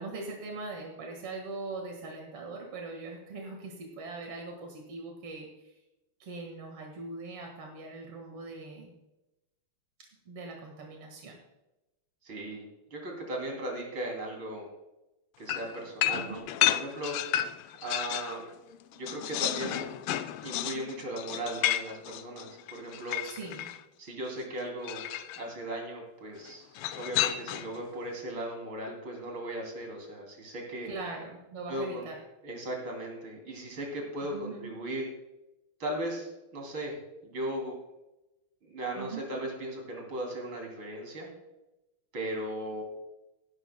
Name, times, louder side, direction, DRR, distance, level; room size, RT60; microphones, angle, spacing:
voice 1, 0.0-5.8 6.2-8.9 10.3-11.4 16.1-16.4 19.6-19.9 23.2-23.7 30.8-32.1 34.3-34.7 38.9-39.2, right 3 dB, 85° right, 1 dB, 2.7 m, -41 dB
voice 2, 12.2-14.7 15.4-17.4 17.8-18.5 18.9-19.9 20.4-23.2 24.0-25.0 25.4-30.9 31.7-32.1 32.4-35.1 35.8-37.0 37.2-37.8 38.6-41.3 42.1-42.8, right 1 dB, 65° right, 0 dB, 3.8 m, -37 dB
sound 1, 15.5-18.4 18.7-23.8 24.8-25.4 26.7-27.8, left 12 dB, 85° left, 1.5 m, -32 dB
17.0 x 11.0 x 2.2 m, 0.96 s
omnidirectional pair, 2.4 m